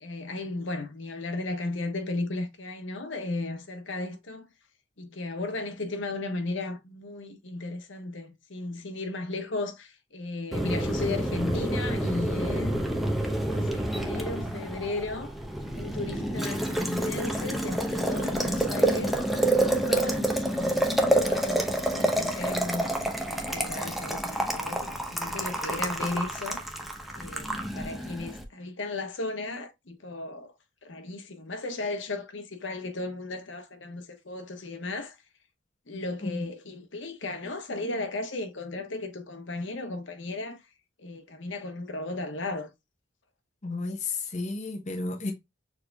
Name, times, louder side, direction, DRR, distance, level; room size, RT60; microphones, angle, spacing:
voice 1, 0.0-4.5 5.0-12.8 13.1-15.3 15.7-19.2 19.6-26.7 27.2-30.5 30.8-35.2 35.9-40.6 41.0-42.7, left 2 dB, 75° left, 1.1 m, -35 dB
Boiling, 10.5-28.4, right 1 dB, ahead, 0.8 m, -28 dB
voice 2, 43.6-45.3, left 3 dB, 40° left, 0.9 m, -32 dB
6.6 x 3.3 x 2.2 m
head